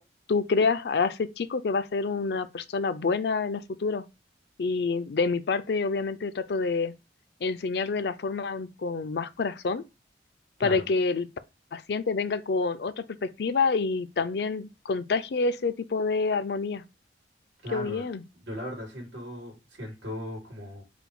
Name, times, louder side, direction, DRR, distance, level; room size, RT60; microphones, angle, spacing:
voice 1, 0.3-4.1 4.6-6.9 7.4-9.8 10.6-11.3 11.7-16.8 17.7-18.2, left 4 dB, 65° left, 0.4 m, -27 dB
voice 2, 17.6-18.1 18.3-20.8, left 1 dB, 90° right, 2.5 m, -37 dB
5.0 x 2.2 x 4.7 m
head